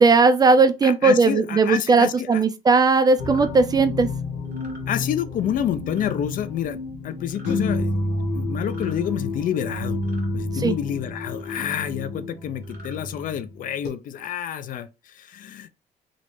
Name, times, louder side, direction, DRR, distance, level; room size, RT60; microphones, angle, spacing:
voice 1, 0.0-4.1 10.6-10.7, right 4 dB, 25° right, 0.3 m, -17 dB
voice 2, 0.8-2.4 4.9-6.8 7.0-8.0 8.3-10.0 10.3-15.7, left 10 dB, 55° left, 0.4 m, -28 dB
sound 1, 3.2-13.9, left 2 dB, 80° left, 1.0 m, -30 dB
sound 2, 3.2-3.5 4.5-4.8 5.9-6.2 7.2-7.6 8.6-9.0 10.0-10.3 11.3-11.7 12.6-13.0, right 1 dB, 55° right, 1.5 m, -47 dB
3.1 x 2.5 x 3.1 m
cardioid pair, 110°, 17 cm